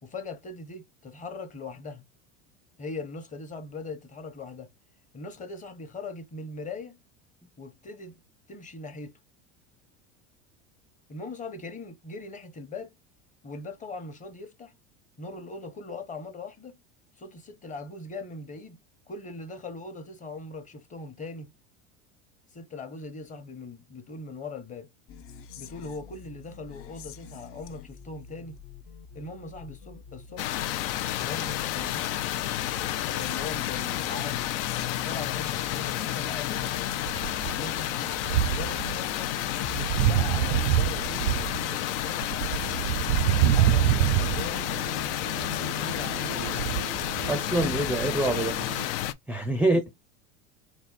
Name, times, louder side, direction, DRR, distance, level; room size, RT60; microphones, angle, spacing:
voice 1, 0.0-2.1 2.8-4.7 5.1-7.0 7.6-8.2 8.5-9.1 11.1-12.9 13.4-14.7 15.2-16.8 17.2-18.8 19.1-21.5 22.5-24.9 25.6-28.6 29.1-30.6 31.2-32.1 33.0-34.6 35.0-37.0 37.5-38.1 38.5-39.3 39.7-42.3 43.5-44.9 45.6-46.6 49.6-49.9, left 3 dB, 20° left, 1.1 m, -40 dB
sound 1, 25.1-39.8, left 6 dB, 40° left, 0.6 m, -47 dB
sound 2, 30.4-49.1, left 13 dB, 80° left, 0.7 m, -31 dB
sound 3, 37.1-37.8 38.2-39.0 39.4-48.8, right 12 dB, 90° right, 0.5 m, -27 dB
voice 2, 47.3-48.6 49.3-49.9, right 2 dB, 5° right, 0.5 m, -25 dB
4.1 x 2.3 x 4.0 m
supercardioid pair, 125°, 34 cm